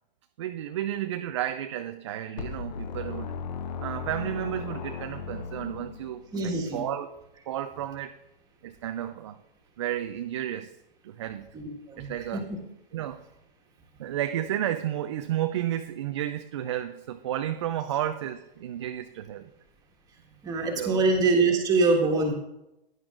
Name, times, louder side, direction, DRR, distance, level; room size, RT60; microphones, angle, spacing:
voice 1, 0.4-3.3 3.8-7.1 7.5-8.1 8.6-9.4 9.8-10.7 11.0-11.5 12.0-12.5 12.9-13.2 14.0-19.5 20.8-21.0, right 11 dB, 30° right, 7 dB, 0.4 m, -32 dB
sound 1, 2.4-6.4, left 6 dB, 45° left, 0.6 m, -36 dB
voice 2, 6.3-6.9 11.5-12.1 12.3-12.4 20.4-22.3, right 3 dB, 10° right, 1 dB, 1.6 m, -24 dB
15.5 x 10.5 x 2.5 m, 0.89 s
hypercardioid pair, 145°, 30 cm